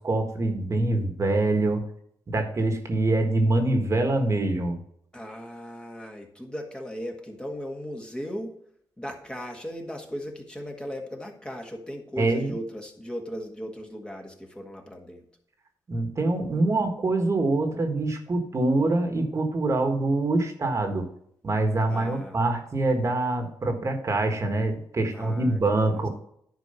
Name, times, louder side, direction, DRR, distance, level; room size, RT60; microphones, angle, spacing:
voice 1, 0.0-1.8 2.3-4.8 12.2-12.5 15.9-21.1 21.4-26.1, right 2 dB, 40° right, 5 dB, 1.6 m, -25 dB
voice 2, 5.1-8.5 9.0-15.2 21.9-22.4 25.1-25.6, equal, 10° left, 2 dB, 1.7 m, -37 dB
10.5 x 4.6 x 5.6 m, 0.68 s
cardioid pair, 90°, 8 cm